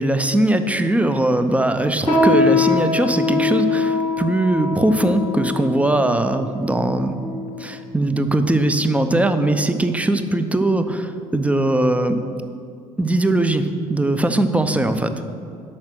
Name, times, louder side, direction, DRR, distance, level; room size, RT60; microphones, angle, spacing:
voice 1, 0.0-7.1 7.6-12.2 13.0-15.1, right 1 dB, 5° right, 9 dB, 0.6 m, -20 dB
sound 1, 2.1-7.7 8.4-8.5 9.3-9.6 10.0-10.1 10.8-10.9, left 3 dB, 85° left, 1.3 m, -22 dB
8.5 x 5.7 x 6.1 m, 2.4 s
figure-of-eight pair, 55°, 19 cm